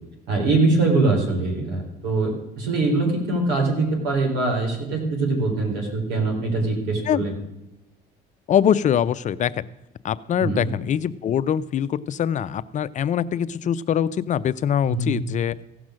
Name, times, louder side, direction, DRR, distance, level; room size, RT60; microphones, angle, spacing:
voice 1, 0.3-7.3 10.4-10.7 14.8-15.3, right 3 dB, 85° right, 1 dB, 3.9 m, -23 dB
voice 2, 8.5-9.6 10.0-15.5, left 9 dB, 45° left, 14 dB, 0.5 m, -23 dB
15.5 x 6.0 x 6.3 m, 0.90 s
cardioid pair, 110°, 17 cm